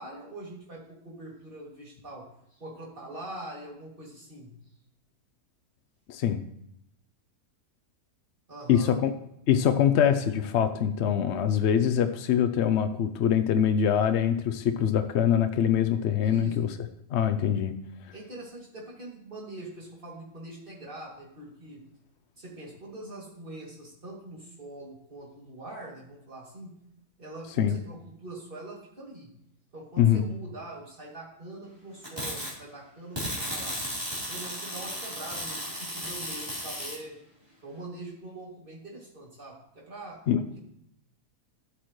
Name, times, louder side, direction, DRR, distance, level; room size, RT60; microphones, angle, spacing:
voice 1, 0.0-2.2 2.5-4.5 8.5-9.0 16.2-16.6 18.1-21.8 22.4-26.8 27.2-29.3 29.7-33.8 34.3-37.2 37.6-40.2, right 2 dB, 30° right, -3 dB, 2.7 m, -43 dB
voice 2, 6.1-6.4 8.7-9.1 9.5-16.8 17.1-17.7 27.6-27.7 30.0-30.2 40.3-40.4, left 9 dB, 70° left, 9 dB, 0.6 m, -24 dB
sound 1, 32.0-32.5 33.2-37.0, equal, 15° right, 3.8 m, -34 dB
12.5 x 8.3 x 3.1 m, 0.77 s
omnidirectional pair, 1.7 m